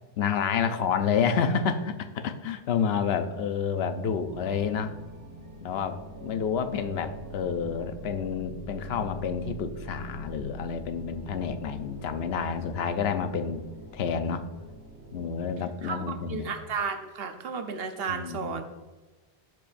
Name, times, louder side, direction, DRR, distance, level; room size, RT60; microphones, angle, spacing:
voice 1, 0.2-4.9 5.6-13.6 13.9-14.4 15.1-16.5 18.1-18.6, left 6 dB, 80° left, 9 dB, 0.8 m, -29 dB
sound 1, 4.1-15.3, equal, 20° right, 1.9 m, -43 dB
voice 2, 15.8-18.6, right 5 dB, 70° right, 7 dB, 1.0 m, -33 dB
11.5 x 4.7 x 2.5 m, 1.2 s
omnidirectional pair, 1.0 m